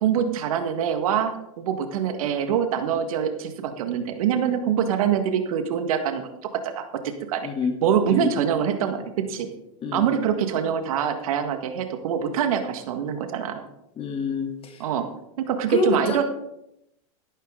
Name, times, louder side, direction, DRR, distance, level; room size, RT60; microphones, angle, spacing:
voice 1, 0.0-6.8 7.3-7.5 7.8-9.5 9.9-13.7 14.8-15.1 15.4-16.2, right 8 dB, 70° right, 8 dB, 1.7 m, -24 dB
voice 2, 7.4-7.7 8.1-8.3 9.8-10.1 14.0-14.8 15.7-16.2, left 5 dB, 30° left, 3 dB, 3.1 m, -27 dB
13.5 x 12.0 x 3.8 m, 0.81 s
hypercardioid pair, 100°, 19 cm